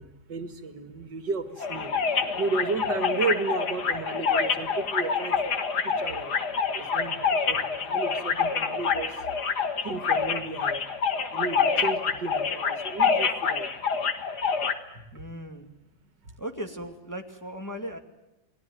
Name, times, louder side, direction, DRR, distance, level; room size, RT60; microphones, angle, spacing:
voice 1, 0.0-1.9 2.4-5.4 5.8-6.3 6.7-9.2 9.8-10.8 11.3-13.7, right 4 dB, 75° right, 9 dB, 2.6 m, -33 dB
sound 1, 1.6-14.7, left 5 dB, 65° left, 2.3 m, -27 dB
voice 2, 15.1-15.7 16.4-18.0, equal, 10° left, 4 dB, 2.1 m, -37 dB
29.0 x 21.5 x 9.3 m, 0.93 s
omnidirectional pair, 1.9 m